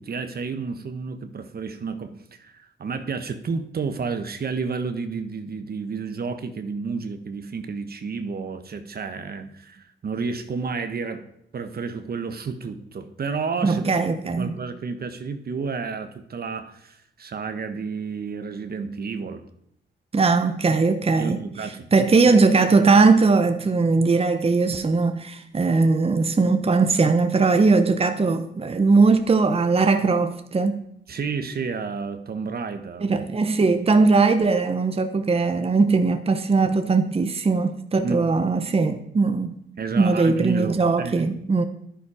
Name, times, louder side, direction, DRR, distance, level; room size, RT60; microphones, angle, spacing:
voice 1, 0.0-11.3 11.5-14.1 14.3-19.5 21.2-22.4 31.1-33.2 38.0-38.3 39.8-41.3, right 5 dB, 50° right, 1.2 m, -31 dB
voice 2, 13.6-14.5 20.1-30.8 33.0-39.6 40.0-41.6, right 4 dB, 30° right, 0.9 m, -20 dB
10.5 x 10.0 x 5.0 m
cardioid pair, 80°, 20 cm